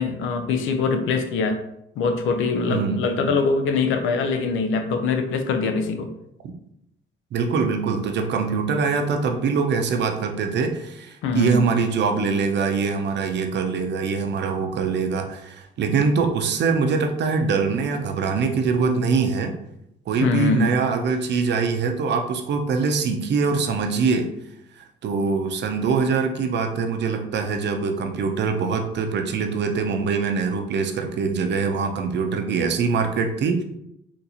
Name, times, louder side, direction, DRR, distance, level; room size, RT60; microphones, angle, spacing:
voice 1, 0.0-1.6 2.0-6.1 11.2-11.6 20.2-20.8, left 4 dB, 85° left, 7 dB, 0.5 m, -23 dB
voice 2, 2.7-3.3 7.3-19.6 20.1-24.3 24.8-33.6, right 5 dB, 60° right, 5 dB, 0.6 m, -23 dB
3.8 x 2.5 x 2.8 m, 0.80 s
cardioid pair, 90°, 20 cm